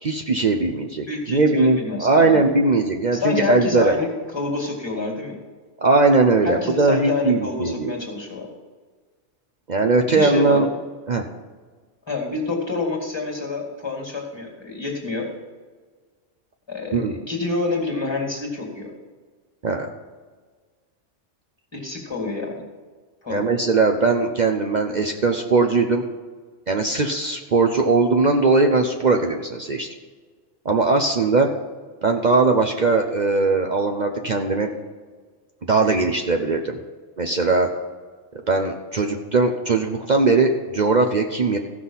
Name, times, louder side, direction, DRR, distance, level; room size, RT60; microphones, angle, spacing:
voice 1, 0.0-4.0 5.8-7.9 9.7-10.7 11.1-11.2 16.9-17.1 19.6-19.9 23.3-26.0 26.7-29.9 30.6-31.5 32.0-34.7 35.7-36.8 37.2-37.7 38.5-41.6, right 3 dB, 45° right, 3 dB, 0.8 m, -19 dB
voice 2, 1.1-2.4 3.1-5.4 6.4-8.5 10.0-10.6 12.1-15.3 16.7-18.9 21.7-22.7 23.2-23.4, left 3 dB, 20° left, 0 dB, 2.3 m, -27 dB
15.0 x 6.1 x 5.6 m, 1.5 s
omnidirectional pair, 1.2 m